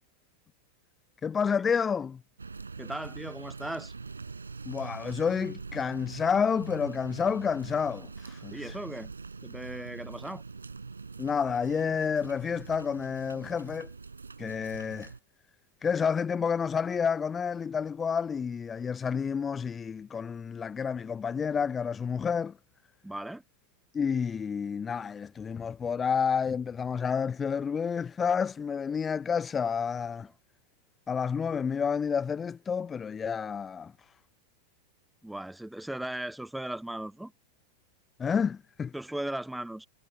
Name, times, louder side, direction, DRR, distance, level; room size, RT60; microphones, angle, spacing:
voice 1, 1.2-2.2 4.7-8.7 11.2-13.9 14.4-15.1 15.8-22.6 23.9-30.3 31.1-33.9 38.2-38.9, left 6 dB, 20° left, 0.6 m, -29 dB
sound 1, 2.4-15.2, right 4 dB, 75° right, 6.4 m, -43 dB
voice 2, 2.8-3.9 8.5-9.1 9.4-10.4 23.0-23.4 35.2-37.3 38.9-39.9, right 1 dB, 5° right, 0.9 m, -37 dB
figure-of-eight pair, 90°, 0 cm